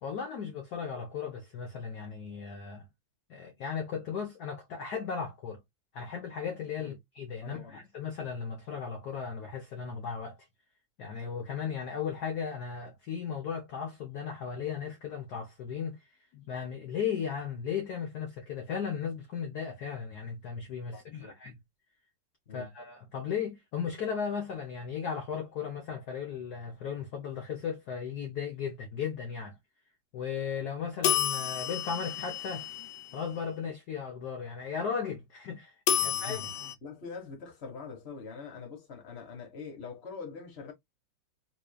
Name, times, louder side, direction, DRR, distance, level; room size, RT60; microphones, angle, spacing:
voice 1, 0.0-2.9 3.3-5.6 5.9-10.4 11.0-16.0 16.3-21.5 22.5-29.5 30.1-32.7 33.1-35.7 36.0-36.4, left 7 dB, 60° left, 1.2 m, -36 dB
voice 2, 7.4-7.8 20.9-21.4 22.5-22.7 36.0-40.7, left 5 dB, 35° left, 1.3 m, -44 dB
sound 1, 31.0-33.3 35.9-36.7, left 10 dB, 80° left, 0.9 m, -31 dB
4.0 x 3.2 x 2.3 m
omnidirectional pair, 2.4 m